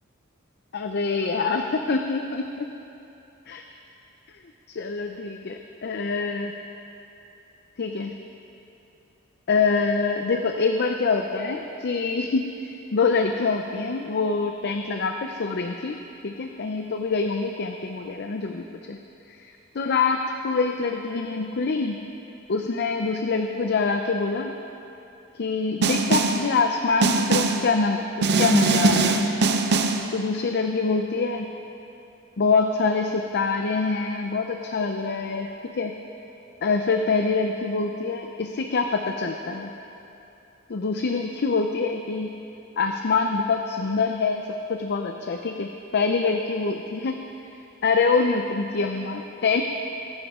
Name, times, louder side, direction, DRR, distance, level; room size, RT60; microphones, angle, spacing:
voice 1, 0.7-2.7 3.5-3.6 4.7-6.5 7.8-8.1 9.5-16.0 16.2-19.0 19.3-22.0 22.5-24.5 25.4-29.3 30.1-31.5 32.4-36.0 36.6-39.7 40.7-42.3 42.8-47.2 47.8-49.6, left 4 dB, 50° left, 5 dB, 0.5 m, -25 dB
Snare drum, 25.8-26.5 27.0-27.7 28.2-30.1, right 3 dB, 50° right, 0.7 m, -21 dB
21.0 x 10.0 x 3.7 m, 2.9 s
head